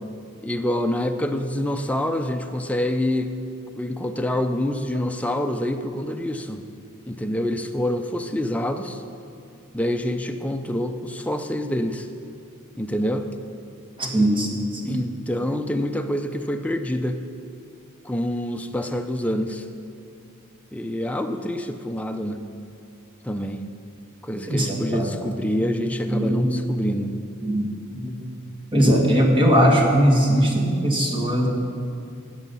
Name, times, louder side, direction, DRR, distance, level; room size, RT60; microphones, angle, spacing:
voice 1, 0.4-3.3 3.8-6.6 7.1-9.0 9.7-12.1 12.8-13.3 14.8-17.2 18.0-19.7 20.7-22.4 23.2-23.6 24.2-27.2, left 1 dB, 5° left, 6 dB, 0.5 m, -26 dB
voice 2, 14.0-15.0 24.5-25.1 25.5-25.6 26.1-26.7 27.4-27.7 27.9-28.2 28.7-31.5, equal, 25° right, -2 dB, 1.8 m, -20 dB
15.5 x 7.3 x 5.5 m, 2.6 s
head